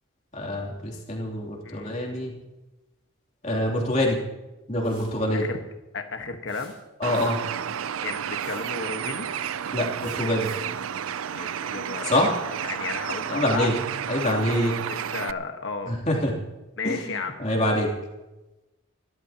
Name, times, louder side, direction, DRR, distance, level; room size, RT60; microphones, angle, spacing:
voice 1, 0.3-2.3 3.4-4.2 4.7-5.4 7.0-7.4 9.7-10.5 12.0-12.3 13.3-13.7 14.1-14.8 15.8-16.4 16.8-17.9, left 1 dB, 35° left, -1 dB, 3.0 m, -25 dB
sound 1, 4.8-5.2 6.5-7.5 8.4-8.7 10.0-10.7, right 2 dB, 25° right, 7.3 m, -50 dB
voice 2, 5.9-6.7 8.0-9.3 11.3-12.3 12.6-13.7 14.9-15.9 16.8-17.3, left 4 dB, 60° left, 5 dB, 1.4 m, -33 dB
Bird, 7.0-15.3, right 8 dB, 80° right, 0.5 m, -31 dB
29.0 x 13.0 x 2.9 m, 1.0 s
head